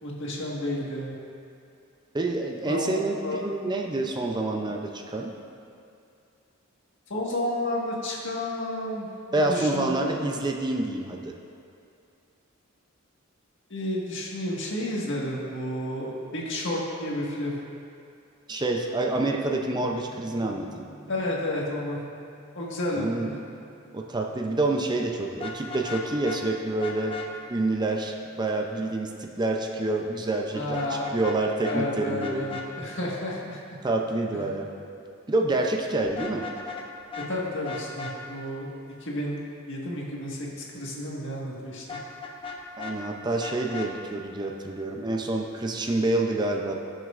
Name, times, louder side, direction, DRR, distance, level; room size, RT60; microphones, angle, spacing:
voice 1, 0.0-1.1 2.6-3.4 7.1-9.1 9.5-10.1 13.7-17.5 21.1-22.0 22.5-23.3 30.5-31.2 31.6-33.6 34.3-34.5 37.3-38.7 39.0-41.8, left 1 dB, 65° left, -4 dB, 1.6 m, -31 dB
voice 2, 2.1-5.4 9.3-11.3 18.5-20.9 22.9-23.4 23.9-27.2 27.5-32.5 33.8-34.7 35.3-36.5 42.8-46.7, right 2 dB, 20° right, 2 dB, 0.5 m, -27 dB
sound 1, 19.0-28.8, equal, 80° right, 2.1 m, -52 dB
Vehicle horn car horn honking, 25.3-26.4 26.8-27.3 30.7-31.4 31.6-31.8 32.2-32.7 36.1-36.9 37.1-37.3 37.6-38.1 41.9-43.0 43.4-43.9, left 5 dB, 25° left, 0.8 m, -36 dB
16.5 x 6.3 x 2.5 m, 2.6 s
head